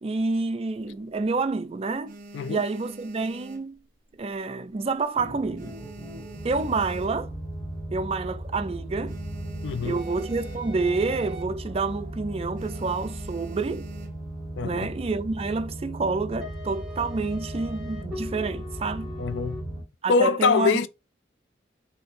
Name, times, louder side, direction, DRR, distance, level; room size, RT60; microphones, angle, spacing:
voice 1, 0.0-2.2 2.5-3.8 4.2-5.8 6.4-7.3 7.9-9.2 9.8-13.9 14.6-19.2 20.0-20.7, right 3 dB, 35° right, 0.4 m, -28 dB
sound 1, 0.7-1.5 1.9-4.4 4.6-5.0 5.3-7.6 8.0-8.1 8.3-8.4 8.7-10.9 11.3-11.5 11.8-12.1 12.5-14.4 15.1-15.7, right 2 dB, 50° right, 0.8 m, -46 dB
sound 2, 5.2-19.8, right 1 dB, ahead, 1.3 m, -36 dB
voice 2, 9.6-10.0 14.6-14.9 19.2-19.6 20.1-20.9, left 4 dB, 85° left, 0.4 m, -23 dB
4.1 x 2.8 x 3.7 m
head